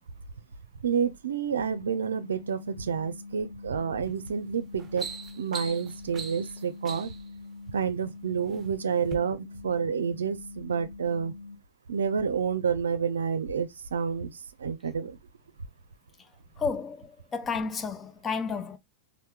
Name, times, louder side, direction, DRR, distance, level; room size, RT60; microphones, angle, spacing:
voice 1, 0.8-5.1 5.4-7.1 7.7-11.3 11.9-15.2, right 6 dB, 70° right, 0.5 m, -29 dB
sound 1, 1.5-11.6, left 3 dB, 85° left, 0.8 m, -44 dB
sound 2, 4.0-4.3 4.7-7.3 8.1-8.6 9.0-9.2, right 4 dB, 20° right, 0.8 m, -40 dB
voice 2, 16.6-18.8, left 5 dB, 20° left, 0.6 m, -32 dB
4.2 x 2.7 x 3.5 m
figure-of-eight pair, 90°, 0 cm